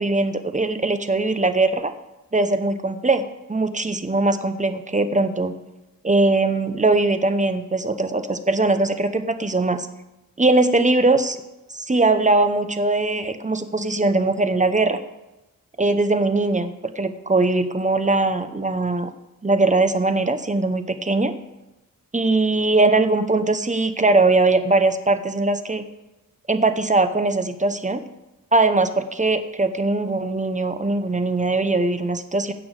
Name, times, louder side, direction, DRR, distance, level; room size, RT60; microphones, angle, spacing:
voice 1, 0.0-1.9 2.3-5.5 6.0-9.9 10.4-11.4 11.7-15.0 15.8-19.1 19.4-21.3 22.1-25.8 26.5-28.0 28.5-32.5, right 2 dB, 20° right, 9 dB, 0.8 m, -20 dB
16.0 x 6.1 x 4.8 m, 0.99 s
wide cardioid pair, 80°, 35 cm